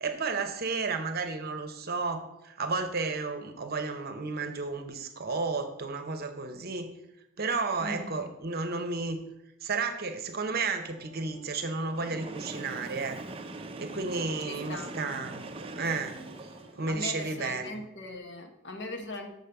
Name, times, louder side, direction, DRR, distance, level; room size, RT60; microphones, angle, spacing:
voice 1, 0.0-6.9 7.4-9.2 9.6-13.2 13.8-16.2 16.8-17.8, right 4 dB, 50° right, 7 dB, 0.8 m, -32 dB
voice 2, 7.8-8.3 14.5-14.9 16.9-19.3, left 2 dB, 60° left, 4 dB, 1.0 m, -39 dB
sound 1, 10.7-17.6, equal, 85° left, 2.1 m, -55 dB
Train, 11.9-16.9, right 2 dB, 25° right, 0.5 m, -41 dB
6.6 x 5.0 x 6.8 m, 0.87 s
head